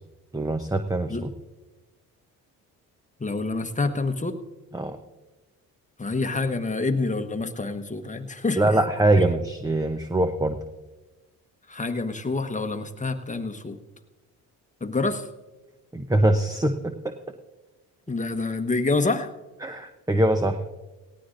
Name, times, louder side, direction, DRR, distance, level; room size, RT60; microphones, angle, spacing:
voice 1, 0.3-1.3 4.7-5.0 8.6-10.6 15.9-17.1 19.6-20.6, right 1 dB, 10° right, 7 dB, 0.8 m, -23 dB
voice 2, 3.2-4.4 6.0-8.8 9.2-9.3 11.7-13.8 14.8-15.3 18.1-19.3, left 3 dB, 20° left, 7 dB, 1.2 m, -27 dB
18.0 x 16.5 x 2.6 m, 1.1 s
supercardioid pair, 65°, 40 cm